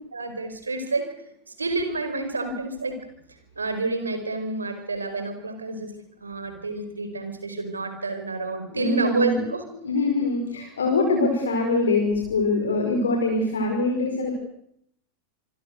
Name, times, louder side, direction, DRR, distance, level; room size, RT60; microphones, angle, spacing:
voice 1, 0.1-1.1 1.6-3.0 3.6-5.9 6.2-9.6, right 3 dB, 75° right, 8 dB, 4.9 m, -29 dB
voice 2, 8.7-14.3, left 2 dB, 70° left, 2 dB, 5.4 m, -24 dB
26.5 x 24.0 x 6.6 m, 0.73 s
figure-of-eight pair, 90°, 0 cm